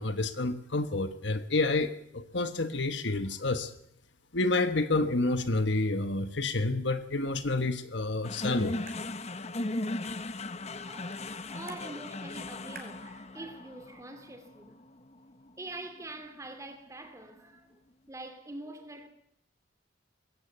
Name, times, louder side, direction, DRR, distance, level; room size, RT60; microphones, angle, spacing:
voice 1, 0.0-3.7 4.3-8.7, left 2 dB, 65° left, 1.4 m, -29 dB
sound 1, 8.0-14.0, right 5 dB, 55° right, 4.1 m, -56 dB
sound 2, 8.2-16.7, left 2 dB, 35° left, 1.1 m, -37 dB
voice 2, 10.8-14.8 15.6-17.8 18.1-19.1, right 2 dB, 15° right, 2.7 m, -45 dB
20.5 x 16.5 x 8.2 m
head